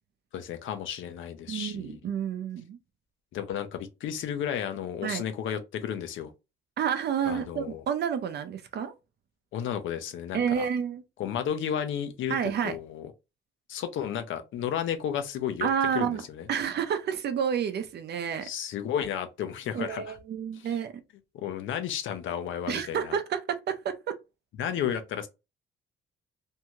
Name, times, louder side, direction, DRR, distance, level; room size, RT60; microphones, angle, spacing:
voice 1, 0.3-2.0 3.3-6.3 7.3-7.8 9.5-10.6 11.2-13.1 13.7-16.5 18.4-20.2 20.5-20.8 21.3-23.2 24.6-25.3, left 9 dB, 75° left, 0.6 m, -33 dB
voice 2, 1.5-2.8 5.0-5.2 6.8-8.9 10.3-11.0 12.3-12.8 15.6-16.2 16.5-18.5 19.7-20.9 22.7-24.1, right 8 dB, 60° right, 0.6 m, -29 dB
2.7 x 2.3 x 2.9 m
cardioid pair, 90°, 20 cm